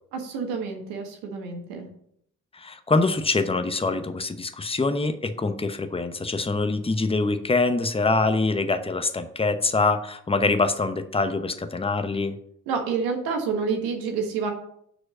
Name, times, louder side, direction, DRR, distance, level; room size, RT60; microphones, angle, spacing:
voice 1, 0.1-1.9 12.7-14.5, right 5 dB, 80° right, 4 dB, 1.4 m, -28 dB
voice 2, 2.5-12.4, left 3 dB, 15° left, 9 dB, 0.9 m, -24 dB
6.2 x 5.0 x 6.2 m, 0.70 s
hypercardioid pair, 45°, 37 cm